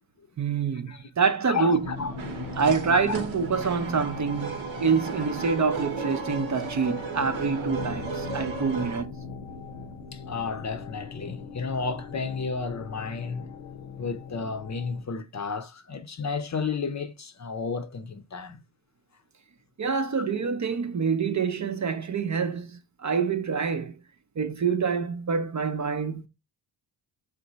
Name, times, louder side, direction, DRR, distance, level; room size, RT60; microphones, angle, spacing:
voice 1, 0.4-1.9 2.6-9.1 19.8-23.9 24.4-26.3, right 5 dB, 40° right, 0.6 m, -26 dB
voice 2, 1.4-2.4 2.9-3.2 10.1-13.5 14.0-18.6, left 5 dB, 35° left, 0.6 m, -32 dB
sound 1, 1.6-9.0, right 4 dB, 70° right, 0.9 m, -35 dB
sound 2, 1.7-15.1, left 4 dB, 75° left, 0.8 m, -40 dB
4.8 x 2.2 x 3.9 m
cardioid pair, 55°, 47 cm